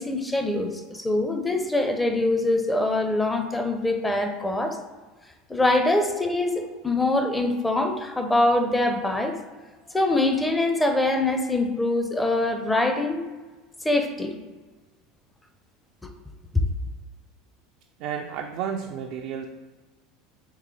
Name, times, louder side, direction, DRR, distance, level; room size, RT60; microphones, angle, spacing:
voice 1, 0.0-4.8 5.5-9.4 9.9-13.2 13.8-14.3 16.0-16.1 16.5-16.7, left 2 dB, 10° left, 4 dB, 0.6 m, -24 dB
voice 2, 18.0-19.5, right 8 dB, 60° right, 3 dB, 0.3 m, -31 dB
3.7 x 3.2 x 3.2 m, 1.3 s
hypercardioid pair, 85°, 0 cm